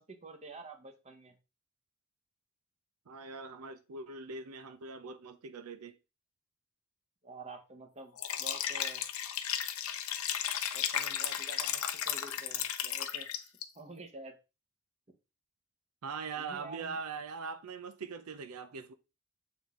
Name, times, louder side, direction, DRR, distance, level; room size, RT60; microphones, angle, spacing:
voice 1, 0.0-1.4 7.2-9.0 10.7-14.4 16.4-17.0, right 2 dB, 30° right, 1.0 m, -49 dB
voice 2, 3.1-6.0 16.0-18.9, right 5 dB, 90° right, 0.6 m, -42 dB
Liquid, 8.2-13.6, left 10 dB, 70° left, 0.7 m, -34 dB
7.1 x 3.8 x 3.6 m
head